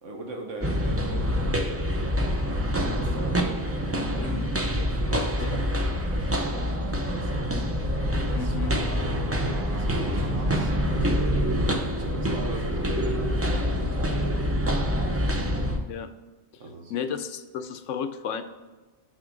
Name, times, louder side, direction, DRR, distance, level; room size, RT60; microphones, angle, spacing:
voice 1, 0.0-4.4 4.7-7.5 8.1-15.3 16.6-17.0, right 1 dB, 90° right, 2 dB, 1.5 m, -40 dB
sound 1, 0.6-15.8, equal, 20° right, 0.4 m, -26 dB
Brass instrument, 7.2-11.4, left 1 dB, 35° right, 0.9 m, -42 dB
voice 2, 8.3-8.7 15.9-16.1 16.9-18.4, left 7 dB, 85° left, 10 dB, 1.0 m, -32 dB
6.4 x 6.3 x 3.8 m, 1.3 s
omnidirectional pair, 1.2 m